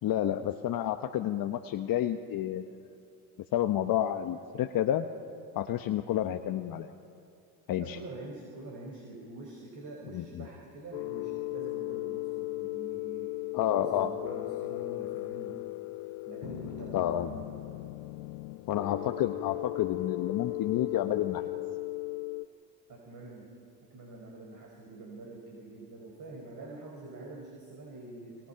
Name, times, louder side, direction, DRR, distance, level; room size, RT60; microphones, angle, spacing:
voice 1, 0.0-2.8 3.5-5.1 5.5-6.9 7.7-8.0 10.1-10.4 13.5-14.1 16.9-17.4 18.7-21.4, left 11 dB, 45° left, 6 dB, 1.1 m, -30 dB
voice 2, 7.8-15.6 16.3-17.5 22.9-23.5 23.8-28.5, right 2 dB, 40° right, -1 dB, 5.4 m, -46 dB
sound 1, 10.9-22.4, left 20 dB, 60° left, 0.8 m, -37 dB
29.0 x 25.0 x 5.8 m, 2.4 s
supercardioid pair, 95°, 47 cm